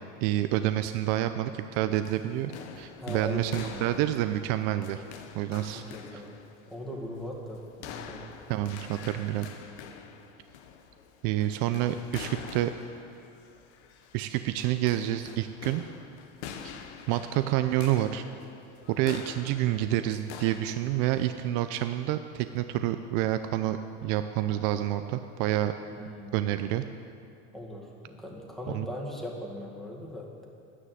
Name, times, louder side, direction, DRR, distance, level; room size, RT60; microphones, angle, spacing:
voice 1, 0.2-5.0 5.3-5.8 6.1-6.2 8.5-9.5 11.2-12.7 14.1-15.8 17.1-18.2 18.9-25.7 26.3-26.8 28.7-28.9, right 13 dB, 60° right, 9 dB, 0.6 m, -28 dB
sound 1, 2.0-21.5, left 7 dB, 90° left, 1.2 m, -46 dB
voice 2, 3.0-3.9 5.7-8.3 26.0-26.4 27.5-30.5, equal, ahead, -3 dB, 1.9 m, -39 dB
11.0 x 9.9 x 7.6 m, 2.4 s
supercardioid pair, 140°, 34 cm